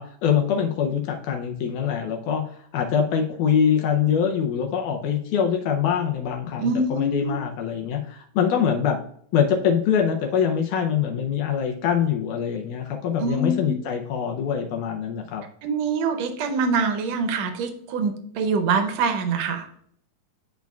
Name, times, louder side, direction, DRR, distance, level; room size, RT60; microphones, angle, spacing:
voice 1, 0.0-2.4 2.7-9.0 9.3-15.4, left 8 dB, 80° left, 3 dB, 2.1 m, -24 dB
voice 2, 6.6-7.4 13.2-13.8 15.6-19.7, right 4 dB, 75° right, 7 dB, 1.7 m, -24 dB
10.5 x 4.7 x 2.3 m, 0.64 s
omnidirectional pair, 3.8 m